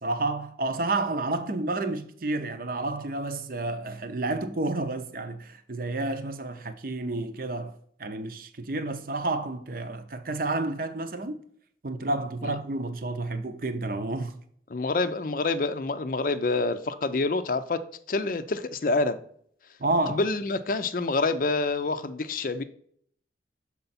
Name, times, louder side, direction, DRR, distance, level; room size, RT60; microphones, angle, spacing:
voice 1, 0.0-7.7 8.0-11.4 11.8-14.3 19.8-20.2, right 2 dB, 50° right, 0.7 m, -30 dB
voice 2, 14.7-17.8 18.1-19.2 20.1-22.6, left 3 dB, 50° left, 0.5 m, -27 dB
6.8 x 4.3 x 4.1 m
head